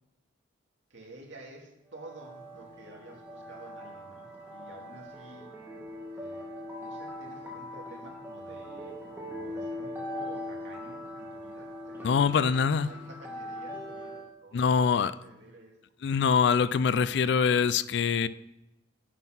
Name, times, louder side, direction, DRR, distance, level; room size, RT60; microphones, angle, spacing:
voice 1, 0.9-5.5 6.1-6.5 6.7-9.0 9.3-15.8, right 2 dB, 70° right, -1 dB, 2.2 m, -50 dB
sound 1, 1.9-14.3, left 1 dB, 10° right, 1.4 m, -41 dB
voice 2, 12.0-12.9 14.5-15.1 16.0-18.3, left 6 dB, 60° left, 16 dB, 0.3 m, -24 dB
9.1 x 4.0 x 5.9 m, 0.91 s
head